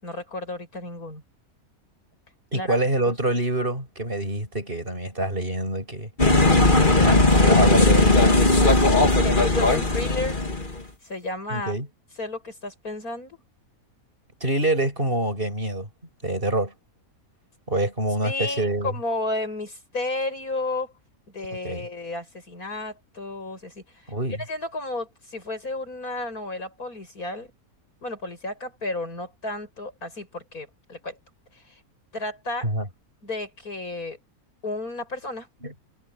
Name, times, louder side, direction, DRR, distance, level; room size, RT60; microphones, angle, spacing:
voice 1, 0.0-1.2 2.5-2.8 9.2-10.4 11.0-11.8 12.2-13.4 18.2-20.9 21.3-24.1 24.5-27.5 28.0-31.2 31.5-31.8 32.1-32.7 33.2-34.2 34.6-35.5, left 2 dB, 75° left, 8.3 m, -32 dB
voice 2, 2.5-6.1 6.7-8.3 11.5-11.9 14.4-15.9 16.2-16.7 17.7-18.9 21.6-21.9 24.1-24.4 32.6-32.8 35.6-35.7, right 1 dB, 35° right, 8.2 m, -26 dB
sound 1, 6.2-10.8, left 2 dB, 35° left, 2.6 m, -18 dB
omnidirectional pair, 1.6 m